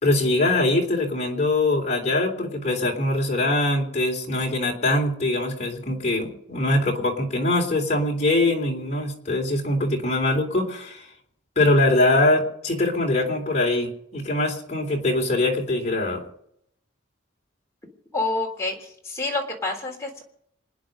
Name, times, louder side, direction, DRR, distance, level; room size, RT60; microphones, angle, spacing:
voice 1, 0.0-11.1 11.6-16.2, left 2 dB, 35° left, -1 dB, 3.5 m, -23 dB
voice 2, 18.1-20.2, left 2 dB, 15° left, -1 dB, 3.4 m, -28 dB
28.0 x 9.7 x 5.2 m, 0.73 s
head